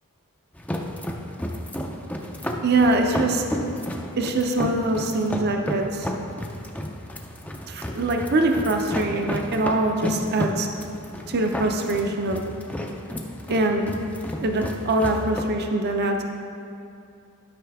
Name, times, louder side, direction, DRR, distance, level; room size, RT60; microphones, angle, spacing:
sound 1, 0.5-15.4, equal, 5° left, 0.4 m, -32 dB
voice 1, 2.6-3.4 4.2-6.1 7.7-10.7 11.3-12.4 13.5-13.9 14.4-16.2, right 2 dB, 45° right, 3 dB, 0.6 m, -23 dB
12.0 x 5.6 x 3.5 m, 2.6 s
head